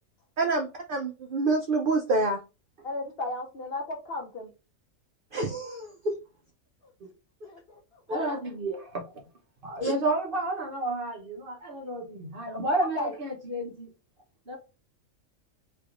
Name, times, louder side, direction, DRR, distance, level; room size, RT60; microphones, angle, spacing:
voice 1, 0.4-2.4 5.3-6.1 9.8-9.9, right 2 dB, 60° right, 0.5 m, -27 dB
voice 2, 2.8-4.5 6.8-6.9 7.4-8.4 12.8-13.1, left 2 dB, 50° left, 0.8 m, -35 dB
voice 3, 8.1-9.0 9.6-13.9 14.5-14.6, right 2 dB, 45° right, 1.1 m, -31 dB
3.4 x 3.0 x 2.4 m
omnidirectional pair, 1.4 m